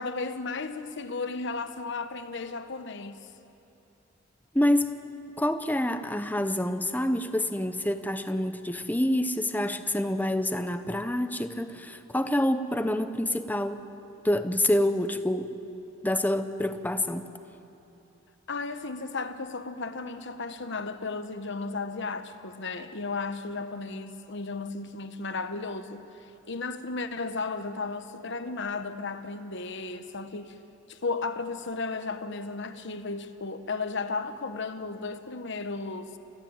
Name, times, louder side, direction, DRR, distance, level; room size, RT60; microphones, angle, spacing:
voice 1, 0.0-3.3 18.5-26.1 26.5-30.5 30.9-36.2, left 3 dB, 60° left, 1.1 m, -34 dB
voice 2, 4.5-5.0 5.4-13.8 14.2-15.5 16.0-17.3, left 1 dB, 10° left, 0.8 m, -27 dB
28.5 x 15.0 x 8.9 m
head